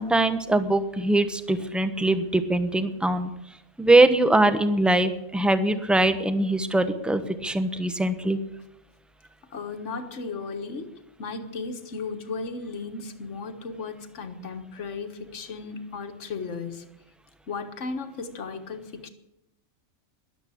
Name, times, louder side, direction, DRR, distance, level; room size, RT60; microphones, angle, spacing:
voice 1, 0.0-3.3 3.8-8.4, right 2 dB, ahead, 10 dB, 0.8 m, -22 dB
voice 2, 9.5-10.9 11.2-16.8 17.5-19.1, left 4 dB, 60° left, 7 dB, 1.7 m, -35 dB
13.0 x 11.5 x 8.5 m, 0.88 s
omnidirectional pair, 1.5 m